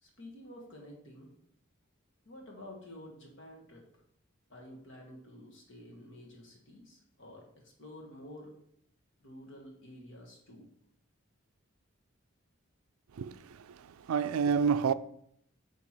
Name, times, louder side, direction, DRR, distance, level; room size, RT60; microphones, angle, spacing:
voice 1, 0.0-1.3 2.2-3.8 4.5-8.5 9.2-10.7, left 1 dB, 60° left, 1.7 m, -50 dB
voice 2, 13.1-14.9, right 6 dB, 85° right, 0.4 m, -29 dB
8.7 x 3.5 x 4.4 m
head